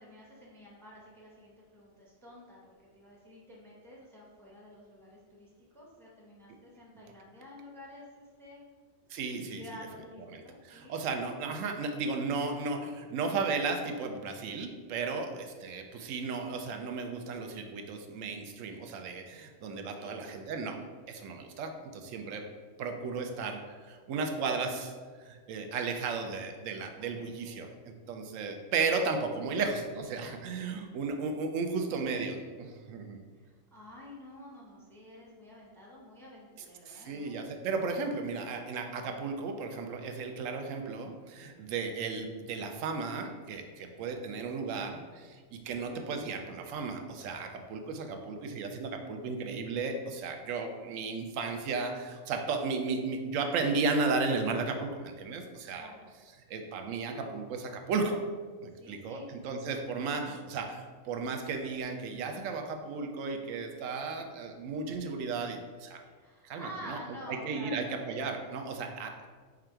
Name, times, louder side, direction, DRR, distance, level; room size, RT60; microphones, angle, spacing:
voice 1, 0.0-8.6 9.3-11.0 15.2-15.4 19.9-20.3 27.0-27.6 33.4-37.4 45.7-45.9 55.8-56.1 58.8-59.3 66.1-68.0, left 1 dB, 5° left, -3 dB, 0.5 m, -50 dB
voice 2, 9.1-9.6 10.3-20.8 21.1-22.4 22.8-24.9 25.2-33.2 36.9-55.9 56.5-58.2 58.6-66.0 66.4-67.0 67.3-69.3, right 4 dB, 90° right, 5 dB, 1.0 m, -34 dB
4.8 x 2.4 x 4.4 m, 1.5 s
omnidirectional pair, 1.3 m